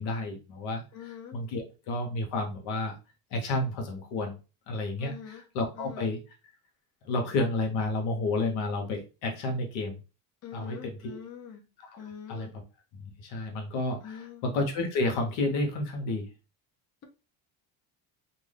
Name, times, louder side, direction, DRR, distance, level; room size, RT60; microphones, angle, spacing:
voice 1, 0.0-2.9 3.3-4.4 4.7-6.2 7.0-10.0 10.5-11.2 11.9-12.5 12.9-16.3, left 2 dB, 80° left, 3 dB, 1.0 m, -31 dB
voice 2, 0.9-1.4 5.0-5.4 5.7-6.1 10.4-11.6 12.0-12.5 14.0-14.4, left 8 dB, 35° left, 3 dB, 0.7 m, -43 dB
2.6 x 2.3 x 3.3 m, 0.31 s
supercardioid pair, 100°, 44 cm